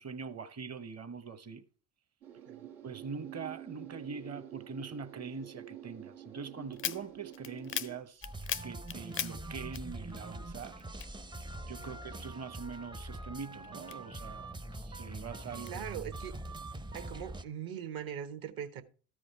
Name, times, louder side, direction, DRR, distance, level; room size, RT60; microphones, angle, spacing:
voice 1, 0.0-1.6 2.8-8.2 8.6-10.8 11.7-15.8, right 5 dB, 35° right, 1.2 m, -43 dB
sound 1, 2.2-8.0, right 11 dB, 80° right, 1.9 m, -48 dB
sound 2, 6.7-10.4 10.6-12.0 12.4-14.5 15.0-15.7, left 10 dB, 30° left, 0.4 m, -40 dB
sound 3, 8.2-17.4, right 2 dB, 10° right, 0.6 m, -43 dB
voice 2, 15.7-16.3 16.9-18.8, right 9 dB, 50° right, 1.4 m, -41 dB
13.5 x 5.0 x 4.5 m
hypercardioid pair, 60°, 44 cm